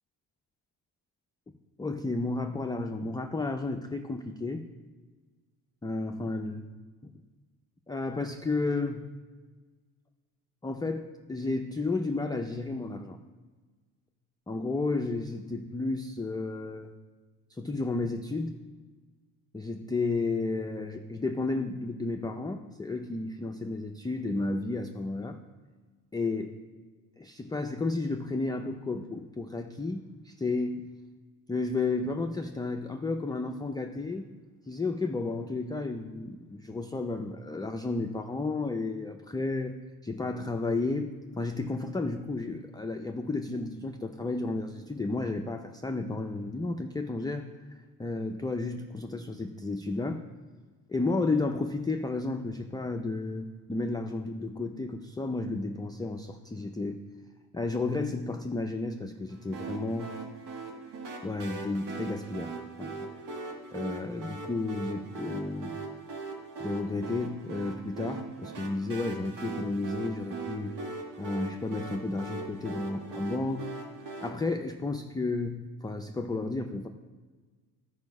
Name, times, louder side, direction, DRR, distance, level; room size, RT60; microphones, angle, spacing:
voice 1, 1.8-4.7 5.8-6.6 7.0-7.1 7.9-9.1 10.6-13.2 14.5-16.9 17.5-18.6 19.5-25.4 26.1-26.5 27.2-30.9 31.5-34.3 34.7-47.5 48.0-50.2 50.9-57.0 57.5-60.1 61.2-62.5 62.8-63.1 63.7-65.8 66.6-70.8 71.2-73.7 74.2-76.9, left 3 dB, 10° left, 4 dB, 0.4 m, -32 dB
sound 1, 59.5-74.3, right 3 dB, 85° right, 1.5 m, -40 dB
12.0 x 4.9 x 5.4 m, 1.4 s
cardioid pair, 100°, 39 cm